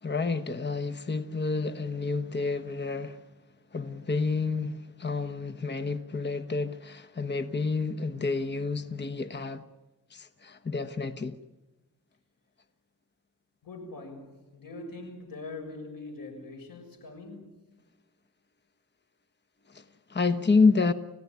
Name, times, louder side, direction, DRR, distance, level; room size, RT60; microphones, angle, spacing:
voice 1, 0.0-3.2 3.7-9.6 10.1-11.4 19.7-20.9, left 4 dB, 30° left, 1.1 m, -29 dB
voice 2, 13.6-17.6, left 3 dB, 90° left, 6.5 m, -42 dB
30.0 x 16.0 x 9.5 m
wide cardioid pair, 95°, 33 cm